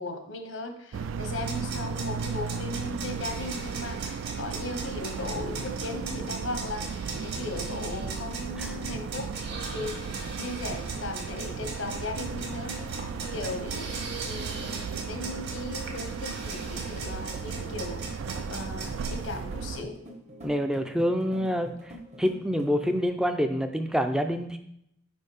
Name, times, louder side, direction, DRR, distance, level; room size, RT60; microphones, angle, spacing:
voice 1, 0.0-9.3 9.7-13.9 14.3-18.0 18.5-20.0, left 2 dB, 80° left, 6 dB, 1.0 m, -37 dB
sound 1, 0.9-19.8, right 5 dB, 75° right, 0.3 m, -35 dB
sound 2, 1.3-19.1, right 4 dB, 55° right, 1.6 m, -39 dB
sound 3, 5.3-23.1, right 1 dB, 35° right, 0.9 m, -46 dB
voice 2, 20.4-21.7 22.2-24.6, equal, 5° right, 6 dB, 0.4 m, -26 dB
5.2 x 4.4 x 4.9 m, 0.74 s
head